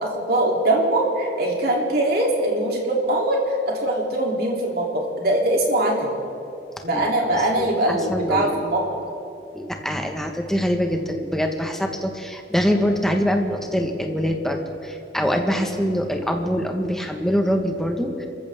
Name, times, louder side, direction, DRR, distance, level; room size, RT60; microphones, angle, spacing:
voice 1, 0.0-6.1 6.8-8.8 15.6-15.7, right 1 dB, 60° right, -1 dB, 3.1 m, -22 dB
voice 2, 6.9-8.6 9.5-18.3, equal, ahead, 3 dB, 1.4 m, -24 dB
27.5 x 14.5 x 3.6 m, 2.8 s
head